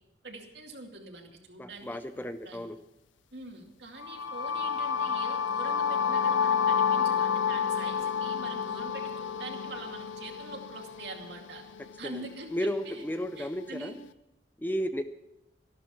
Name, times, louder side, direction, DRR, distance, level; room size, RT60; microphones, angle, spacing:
voice 1, 0.2-2.0 2.4-2.6 3.3-11.6 12.0-13.1 13.4-14.0, right 2 dB, 65° right, 2 dB, 2.4 m, -44 dB
voice 2, 1.6-2.8 12.0-12.1 12.5-13.9 14.6-15.2, equal, 10° left, 10 dB, 0.5 m, -33 dB
sound 1, 4.0-11.9, left 7 dB, 85° left, 0.6 m, -29 dB
14.0 x 12.0 x 5.9 m, 0.91 s
head